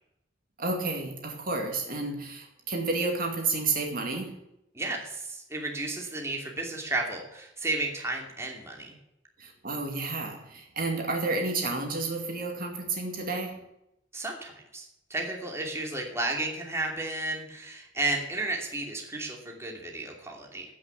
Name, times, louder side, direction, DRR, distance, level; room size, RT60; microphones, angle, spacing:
voice 1, 0.6-4.4 9.4-13.6, right 3 dB, 50° right, 2 dB, 2.3 m, -31 dB
voice 2, 4.7-9.0 14.1-20.7, right 2 dB, 15° right, 0 dB, 2.6 m, -33 dB
15.5 x 6.2 x 8.3 m, 0.85 s
head